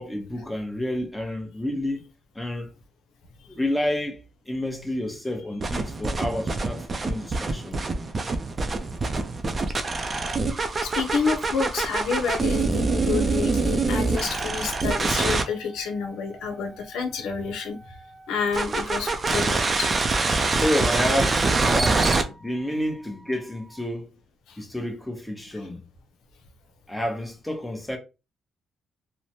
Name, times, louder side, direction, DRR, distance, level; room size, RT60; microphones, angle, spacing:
voice 1, 0.0-2.1 2.3-2.7 3.5-4.2 4.5-7.8 20.6-24.1 24.6-25.8 26.9-28.0, left 1 dB, 10° left, 0.9 m, -29 dB
sound 1, 5.6-15.4 18.5-22.2, right 3 dB, 35° right, 0.5 m, -25 dB
voice 2, 10.8-17.8 18.3-19.9 24.5-24.6, left 5 dB, 85° left, 0.6 m, -29 dB
3.0 x 2.1 x 2.7 m
cardioid pair, 90°, 0 cm